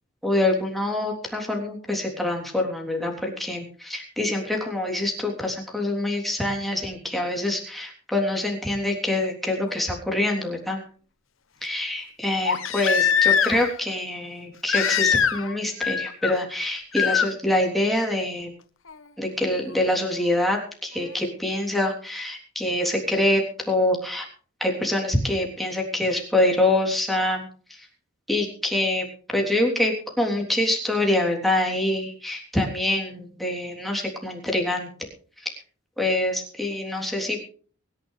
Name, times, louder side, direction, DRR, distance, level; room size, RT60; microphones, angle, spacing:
voice 1, 0.2-10.8 11.6-18.5 19.2-24.3 24.6-27.4 27.7-27.9 28.3-29.1 29.3-34.9 35.4-35.5 36.0-37.4, left 1 dB, ahead, -1 dB, 3.4 m, -25 dB
Crying sobbing, 9.7-9.8 12.4-13.8 14.7-15.5 15.8-16.3 16.9-17.3 18.9-19.0, left 7 dB, 80° left, 1.3 m, -22 dB
23.5 x 11.0 x 3.3 m, 0.43 s
head